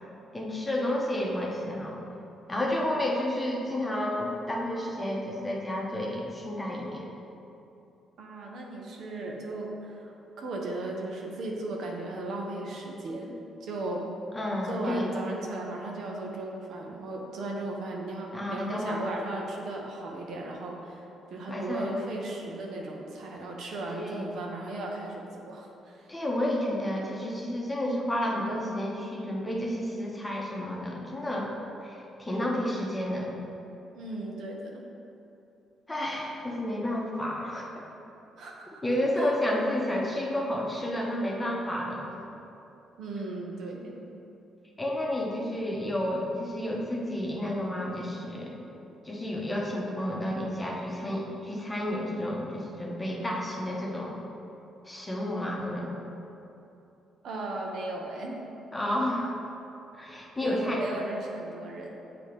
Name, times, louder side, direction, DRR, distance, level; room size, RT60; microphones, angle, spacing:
voice 1, 0.3-2.0 2.5-7.1 14.3-15.1 18.3-19.0 21.5-22.0 23.9-24.3 26.1-31.5 31.8-33.3 35.9-37.7 38.8-42.1 44.8-48.7 49.0-54.2 54.8-55.9 58.7-59.4 59.9-60.8, left 1 dB, 15° left, -2 dB, 1.0 m, -31 dB
voice 2, 8.2-14.1 14.6-21.0 21.3-26.1 33.9-34.8 38.4-38.8 39.1-39.4 43.0-44.0 57.2-58.4 60.4-62.0, right 2 dB, 70° right, -1 dB, 0.9 m, -36 dB
7.3 x 2.9 x 5.1 m, 2.8 s
cardioid pair, 90°, 0 cm